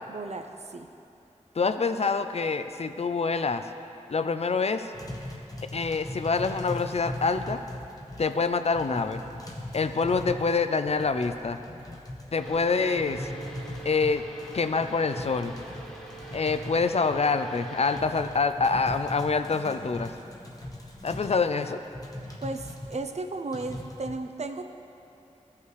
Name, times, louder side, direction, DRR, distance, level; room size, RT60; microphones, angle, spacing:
voice 1, 0.1-0.9 22.4-24.6, right 3 dB, 60° right, 6 dB, 0.5 m, -35 dB
voice 2, 1.6-3.7 4.1-4.9 5.7-7.6 8.2-9.2 9.7-11.6 12.3-13.3 13.9-14.2 14.5-15.5 16.3-20.1 21.0-21.8, left 4 dB, 55° left, 9 dB, 0.4 m, -26 dB
sound 1, 4.9-23.0 23.5-24.1, left 1 dB, 30° left, 0.9 m, -40 dB
sound 2, 12.4-18.0, right 3 dB, 5° left, 1.4 m, -44 dB
13.5 x 5.7 x 3.2 m, 2.8 s
wide cardioid pair, 50°, 13 cm